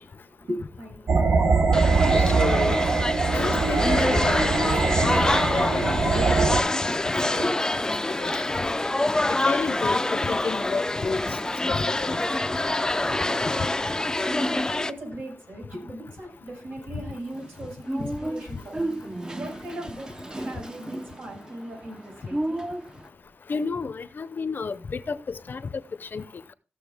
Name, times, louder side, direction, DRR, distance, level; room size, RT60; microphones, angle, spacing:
voice 1, 0.0-1.7 6.8-7.6 11.1-11.5 12.9-13.7 14.0-18.9 19.4-20.1 20.3-22.6, equal, 80° right, 6.2 m, -38 dB
sound 1, 1.1-6.6, right 4 dB, 60° right, 1.0 m, -22 dB
sound 2, 1.7-14.9, left 2 dB, 15° left, 0.5 m, -26 dB
voice 2, 2.4-2.8 3.3-5.3 5.5-6.2 6.5-6.7 7.3-7.4 8.2-8.3 9.3-11.2 11.7-12.2 23.5-25.6 26.1-26.2, left 4 dB, 55° left, 0.7 m, -31 dB
sound 3, 17.3-23.1, right 1 dB, 20° right, 0.7 m, -34 dB
15.5 x 6.8 x 3.5 m
wide cardioid pair, 105°, 4 cm